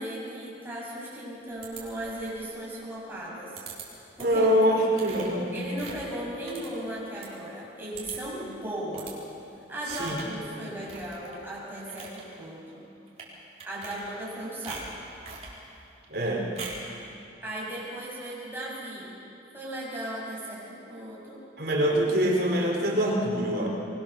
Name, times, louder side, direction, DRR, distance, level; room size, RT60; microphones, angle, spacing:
voice 1, 0.0-3.6 4.2-4.5 5.5-9.1 9.7-12.9 13.6-14.8 17.4-19.1 19.5-21.4, right 1 dB, 10° right, -6 dB, 7.0 m, -36 dB
sound 1, 1.6-2.3 3.6-3.9 4.2-4.5 4.9-7.3 7.6-7.7 7.9-8.4 8.9-9.2 9.9-10.4 10.8-11.4 11.7-12.2 13.1-13.3 13.6-14.3 14.6-15.6 16.6-16.9, right 4 dB, 35° right, 4.4 m, -42 dB
voice 2, 4.2-5.6 9.9-10.2 16.1-16.5 21.6-23.7, equal, 60° right, -1 dB, 4.1 m, -24 dB
24.0 x 22.0 x 6.8 m, 2.7 s
head